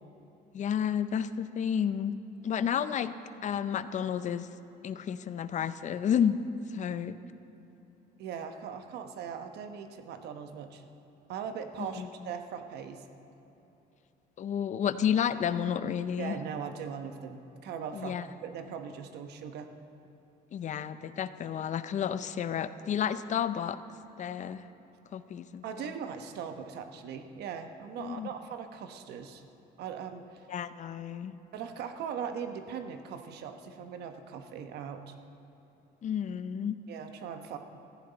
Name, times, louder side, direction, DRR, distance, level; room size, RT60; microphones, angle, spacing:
voice 1, 0.5-2.2 2.4-3.1 3.4-4.5 4.8-6.4 6.7-7.2 12.0-12.1 14.4-16.4 17.9-18.2 20.5-23.8 24.2-24.6 25.1-25.6 28.0-28.3 30.5-31.4 36.0-36.8, left 8 dB, 45° left, 13 dB, 0.5 m, -31 dB
voice 2, 8.2-10.8 11.3-13.0 16.2-19.7 25.6-29.4 29.8-30.4 31.5-35.1 36.9-37.6, right 7 dB, 75° right, 7 dB, 1.0 m, -40 dB
15.0 x 14.5 x 4.0 m, 2.9 s
cardioid pair, 110°, 17 cm